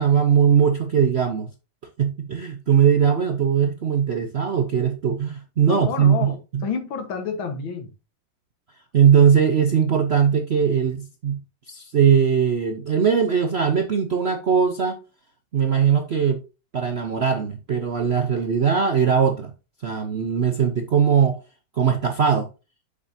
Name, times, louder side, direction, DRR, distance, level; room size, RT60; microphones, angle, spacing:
voice 1, 0.0-1.5 2.0-6.6 8.9-11.4 11.7-15.0 15.5-16.4 16.7-19.5 19.8-21.4 21.8-22.5, right 7 dB, 60° right, 0.6 m, -20 dB
voice 2, 5.7-7.9, left 6 dB, 85° left, 2.2 m, -29 dB
7.3 x 6.7 x 2.7 m
omnidirectional pair, 2.1 m